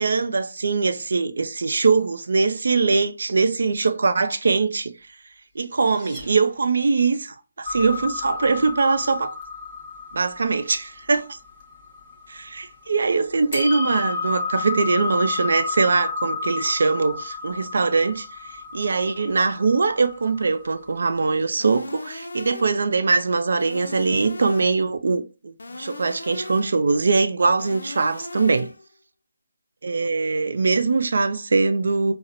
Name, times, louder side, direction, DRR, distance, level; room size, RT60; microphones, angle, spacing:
voice 1, 0.0-4.9 5.6-9.3 10.1-11.4 12.3-18.3 18.7-28.7 29.8-32.1, right 4 dB, 65° right, 0.4 m, -22 dB
sound 1, 5.1-7.1, right 1 dB, 5° right, 1.0 m, -46 dB
sound 2, 7.6-12.8 13.5-21.0, left 4 dB, 20° left, 0.8 m, -32 dB
sound 3, 21.6-22.9 23.6-24.9 25.6-26.9 27.6-28.9, left 2 dB, 75° left, 0.4 m, -37 dB
4.1 x 2.0 x 2.5 m
figure-of-eight pair, 160°, 0 cm